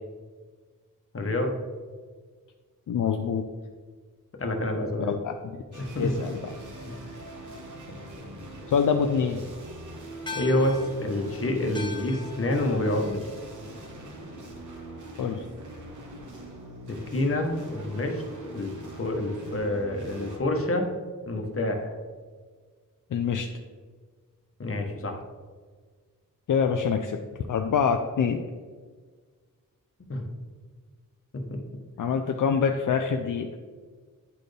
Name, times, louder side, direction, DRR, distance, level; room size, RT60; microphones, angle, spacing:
voice 1, 1.1-1.5 4.4-5.2 5.8-6.1 10.4-13.3 16.9-18.2 18.5-18.7 19.0-20.9 21.3-21.9 24.6-25.2 30.1-30.2 31.3-31.4, left 1 dB, 40° left, 3 dB, 1.0 m, -27 dB
voice 2, 2.9-3.5 5.0-6.4 8.7-9.4 15.2-15.4 23.1-23.5 26.5-27.2 27.5-28.4 32.0-33.5, left 6 dB, 70° left, 4 dB, 0.5 m, -25 dB
sound 1, 5.7-20.4, right 1 dB, 65° right, 1.2 m, -42 dB
sound 2, 10.3-14.9, left 4 dB, 15° left, 0.6 m, -43 dB
9.5 x 4.2 x 3.3 m, 1.5 s
wide cardioid pair, 80°, 33 cm